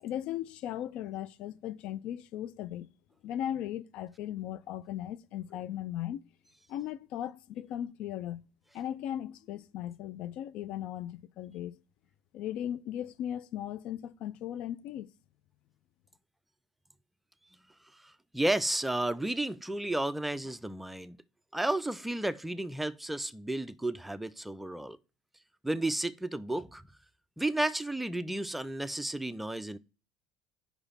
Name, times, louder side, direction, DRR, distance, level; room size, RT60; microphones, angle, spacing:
voice 1, 0.0-2.9 3.2-6.2 6.7-8.5 8.7-11.8 12.3-15.1, left 11 dB, 55° left, 0.4 m, -37 dB
voice 2, 18.0-21.2 21.5-25.0 25.6-26.8 27.4-29.8, right 1 dB, 5° right, 0.4 m, -32 dB
5.3 x 4.8 x 5.6 m
figure-of-eight pair, 65°, 2 cm